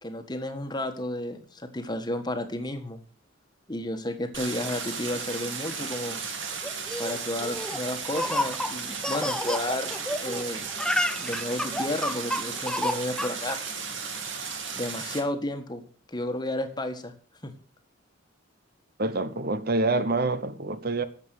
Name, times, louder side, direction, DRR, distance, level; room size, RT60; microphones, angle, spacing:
voice 1, 0.0-3.0 3.7-6.2 7.0-9.9 10.2-10.7 11.2-13.6 14.7-15.8 16.1-17.1 17.4-17.5, left 1 dB, 20° left, 1.5 m, -32 dB
Stream, 4.3-15.2, right 5 dB, 75° right, 2.6 m, -35 dB
Laughter, 6.6-10.4 10.7-13.6, left 1 dB, 5° left, 0.7 m, -30 dB
voice 2, 19.0-21.0, right 2 dB, 50° right, 1.0 m, -26 dB
12.5 x 7.6 x 7.8 m
head